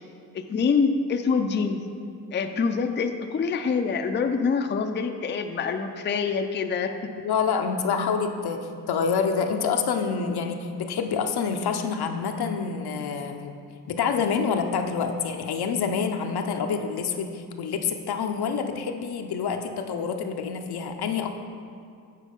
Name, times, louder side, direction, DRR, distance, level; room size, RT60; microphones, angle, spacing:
voice 1, 0.3-1.8 2.3-7.1, left 5 dB, 30° left, 6 dB, 0.4 m, -25 dB
voice 2, 7.2-13.6 13.9-21.3, left 6 dB, 70° left, 5 dB, 0.7 m, -27 dB
8.3 x 4.5 x 5.3 m, 2.3 s
cardioid pair, 85°, 39 cm